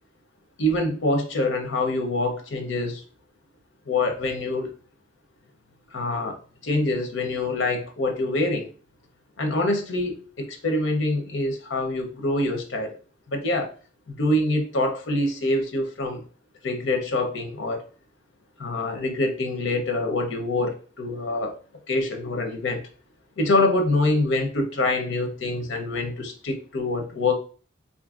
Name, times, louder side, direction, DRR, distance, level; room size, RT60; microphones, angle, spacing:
voice 1, 0.6-3.0 3.9-4.7 5.9-8.7 9.4-12.9 13.3-13.7 14.1-16.2 16.6-17.8 18.6-21.5 21.9-22.8 23.4-27.4, left 2 dB, 85° left, 5 dB, 0.6 m, -25 dB
3.8 x 2.5 x 2.3 m, 0.40 s
head